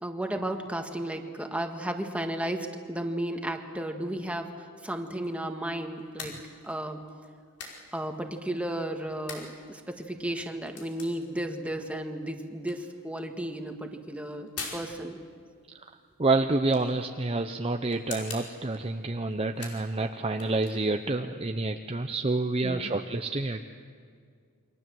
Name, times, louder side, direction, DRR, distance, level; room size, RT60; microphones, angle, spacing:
voice 1, 0.0-6.4 6.6-7.0 7.9-15.2 22.6-22.9, right 1 dB, 5° right, 4 dB, 1.8 m, -34 dB
sound 1, 4.7-21.1, left 4 dB, 85° left, 5.1 m, -47 dB
voice 2, 16.2-23.7, right 2 dB, 25° right, 5 dB, 0.7 m, -28 dB
29.0 x 24.0 x 7.8 m, 2.1 s
head